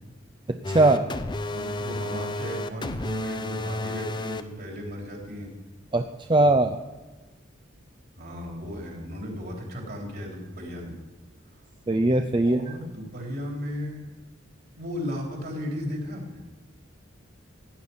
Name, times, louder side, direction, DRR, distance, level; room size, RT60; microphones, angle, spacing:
sound 1, 0.6-4.4, left 2 dB, 25° left, 0.6 m, -32 dB
voice 1, 0.7-1.1 5.9-6.0 6.3-6.8 11.9-12.6, right 2 dB, 25° right, 7 dB, 0.5 m, -20 dB
voice 2, 1.5-5.5 8.2-11.0 12.4-14.0 14.7-16.4, equal, 50° right, -1 dB, 3.7 m, -35 dB
16.0 x 10.0 x 5.5 m, 1.2 s
head